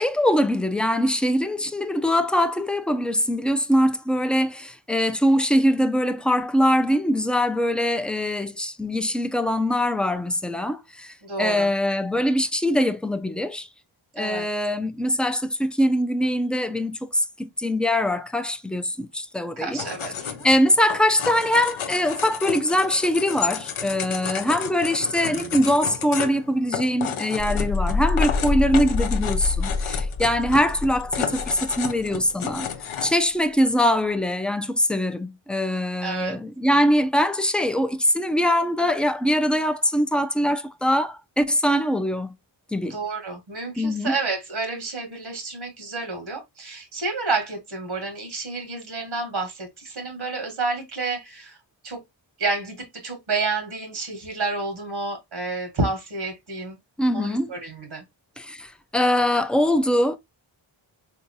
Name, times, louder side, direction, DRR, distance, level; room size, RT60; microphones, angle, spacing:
voice 1, 0.0-13.7 14.2-19.9 20.4-32.7 33.0-42.3 42.7-43.0 43.8-44.1 57.0-57.5 58.4-60.2, equal, ahead, 0.4 m, -22 dB
voice 2, 11.2-11.7 14.2-14.5 19.6-20.5 25.0-25.6 36.0-36.4 42.9-51.6 51.8-52.0 52.4-56.8 57.1-58.0, right 3 dB, 70° right, 1.3 m, -30 dB
sound 1, 19.8-33.1, left 8 dB, 80° left, 0.7 m, -32 dB
sound 2, 27.4-32.0, left 3 dB, 40° left, 0.8 m, -26 dB
3.6 x 2.8 x 2.5 m
cardioid pair, 45°, 48 cm